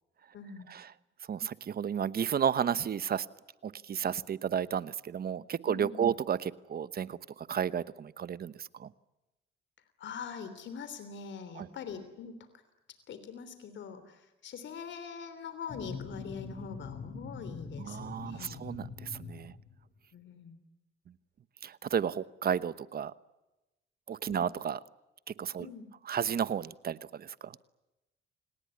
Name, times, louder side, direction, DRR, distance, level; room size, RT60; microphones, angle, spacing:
voice 1, 0.3-0.7 5.7-6.1 10.0-12.4 13.1-18.6 20.1-20.6 24.3-24.5 25.6-25.9, left 6 dB, 65° left, 10 dB, 3.3 m, -43 dB
voice 2, 1.3-3.3 3.6-8.9 11.5-11.7 17.8-19.5 21.6-23.1 24.1-24.8 25.3-25.7 26.0-27.6, right 8 dB, 50° right, 16 dB, 1.1 m, -33 dB
sound 1, 15.7-20.0, left 4 dB, 40° left, 5.6 m, -44 dB
29.0 x 19.0 x 9.7 m, 1.0 s
cardioid pair, 90°, 20 cm